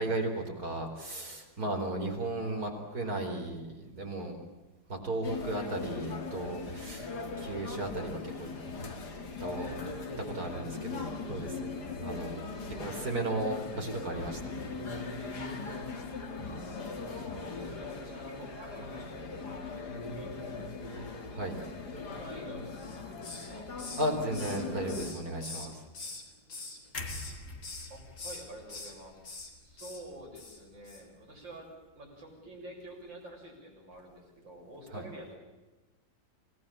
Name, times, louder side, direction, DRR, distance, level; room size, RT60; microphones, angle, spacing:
voice 1, 0.0-4.4 4.9-8.5 9.4-9.7 10.2-12.5 12.8-14.6 21.3-21.5 24.0-25.8 34.9-35.0, right 1 dB, 50° right, 2 dB, 4.8 m, -35 dB
sound 1, 5.2-25.1, left 4 dB, 60° left, 3.1 m, -39 dB
voice 2, 17.0-21.2 22.2-23.7 27.9-29.2 29.6-35.4, right 1 dB, 80° right, -1 dB, 8.0 m, -49 dB
Hiss, 22.8-23.5 23.8-26.2 26.5-27.3 27.6-27.9 28.2-28.9 29.2-29.5 29.8-30.0 30.3-30.6 30.8-31.0, left 3 dB, 85° left, 4.7 m, -43 dB
sound 2, 26.9-31.0 31.3-31.5, left 2 dB, 45° left, 2.3 m, -46 dB
27.0 x 18.0 x 8.8 m, 1.1 s
omnidirectional pair, 2.0 m